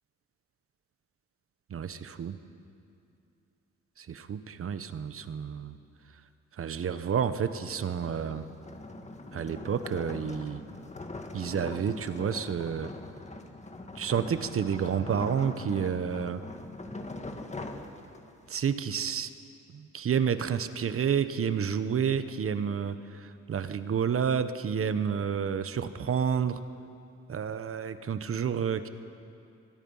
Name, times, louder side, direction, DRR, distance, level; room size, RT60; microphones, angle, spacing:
voice 1, 1.7-2.4 4.0-5.8 6.5-8.5 9.3-10.6 11.3-12.9 13.9-16.4 18.5-19.3 19.7-26.6 27.3-28.9, right 7 dB, 50° right, 11 dB, 1.1 m, -30 dB
sound 1, 7.5-18.5, left 2 dB, 25° left, 1.9 m, -42 dB
24.0 x 22.0 x 5.6 m, 2.7 s
cardioid pair, 90°, 30 cm